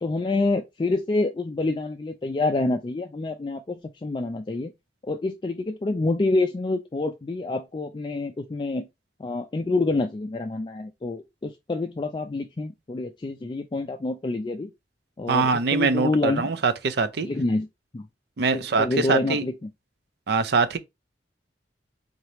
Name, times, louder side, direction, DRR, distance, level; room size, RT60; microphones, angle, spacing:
voice 1, 0.0-4.7 5.0-8.9 9.2-14.7 15.2-16.5 17.2-17.7 17.9-18.0 18.5-19.5, left 2 dB, 25° left, 0.3 m, -27 dB
voice 2, 15.3-17.3 18.4-19.4 20.3-20.8, right 4 dB, 65° right, 0.5 m, -23 dB
3.9 x 2.9 x 3.2 m
head